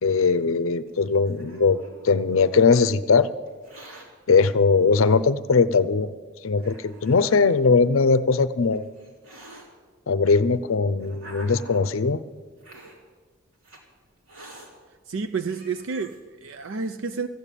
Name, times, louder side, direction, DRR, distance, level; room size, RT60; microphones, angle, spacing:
voice 1, 0.0-1.8 2.0-3.3 4.3-6.1 6.4-8.8 10.1-12.2, left 4 dB, 70° left, 0.6 m, -20 dB
Hiss, 0.9-2.5 3.5-4.1 5.0-5.1 5.9-6.0 6.6-7.6 8.4-9.7 10.5-12.0 12.6-13.0 13.6-13.8 14.3-14.7 15.2-15.3 15.5-16.2, right 1 dB, 80° right, 2.9 m, -46 dB
voice 2, 15.1-17.3, right 5 dB, 65° right, 0.5 m, -30 dB
14.5 x 8.4 x 9.0 m
head